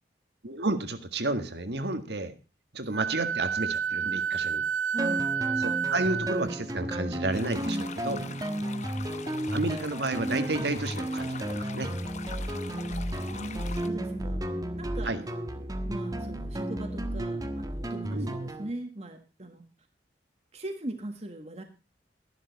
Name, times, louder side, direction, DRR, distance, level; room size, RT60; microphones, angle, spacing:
voice 1, 0.4-2.3 2.7-4.6 5.6-8.2 9.5-11.9 15.0-15.2 18.1-18.3, right 2 dB, 65° right, 10 dB, 1.8 m, -31 dB
Wind instrument woodwind instrument, 2.9-6.5, right 7 dB, 90° right, 0.5 m, -30 dB
voice 2, 4.9-5.2 7.6-8.5 12.5-14.4 14.7-19.6 20.5-21.6, right 1 dB, 35° right, 5 dB, 1.6 m, -40 dB
sound 1, 5.0-18.7, right 1 dB, 20° right, 1.4 m, -33 dB
sound 2, 7.3-13.9, left 6 dB, 40° left, 1.0 m, -43 dB
13.0 x 11.5 x 4.1 m, 0.32 s
head